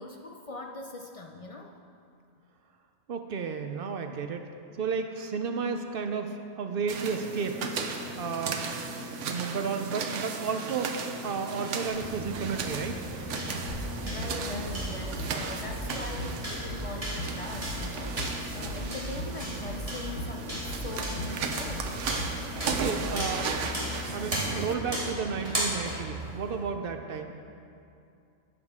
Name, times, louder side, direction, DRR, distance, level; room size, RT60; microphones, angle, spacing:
voice 1, 0.0-1.7 13.6-22.0, left 2 dB, 55° left, 2 dB, 0.3 m, -41 dB
voice 2, 3.1-4.5 4.8-7.6 8.2-8.7 9.2-13.0 22.4-23.5 24.1-27.3, right 5 dB, 60° right, 6 dB, 0.7 m, -32 dB
sound 1, 6.9-24.7, right 4 dB, 85° right, 1.0 m, -36 dB
sound 2, 11.9-26.6, right 1 dB, 30° right, 2.4 m, -37 dB
sound 3, 13.7-23.5, left 1 dB, 85° left, 1.5 m, -38 dB
12.0 x 8.2 x 3.6 m, 2.5 s
omnidirectional pair, 1.2 m